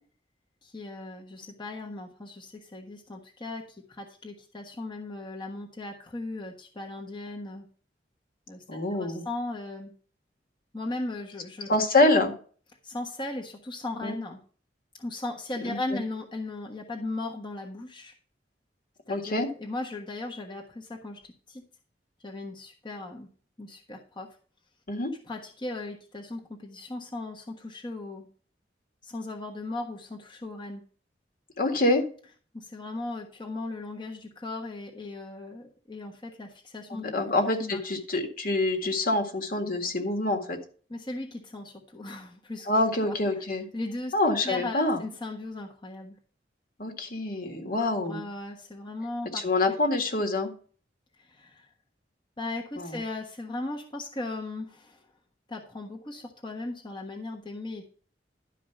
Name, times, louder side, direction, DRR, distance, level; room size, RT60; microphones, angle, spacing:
voice 1, 0.6-7.7 8.5-8.6 8.9-9.9 10.7-11.7 12.8-14.4 15.0-18.1 19.1-19.3 19.6-21.6 22.2-23.3 23.6-24.4 25.3-28.3 29.0-30.8 32.5-37.1 37.6-37.8 40.9-42.7 43.1-43.4 43.7-44.1 44.4-46.2 47.8-49.4 51.2-51.7 52.4-55.0 55.5-57.9, left 2 dB, 25° left, -1 dB, 1.3 m, -37 dB
voice 2, 8.7-9.2 11.7-12.3 14.0-14.2 15.6-16.0 19.1-19.5 24.9-25.1 31.6-32.0 36.9-40.6 42.7-43.7 44.1-45.0 46.8-48.2 49.3-50.5 52.8-53.0, left 2 dB, 55° left, 3 dB, 1.9 m, -26 dB
12.0 x 4.9 x 5.8 m, 0.42 s
head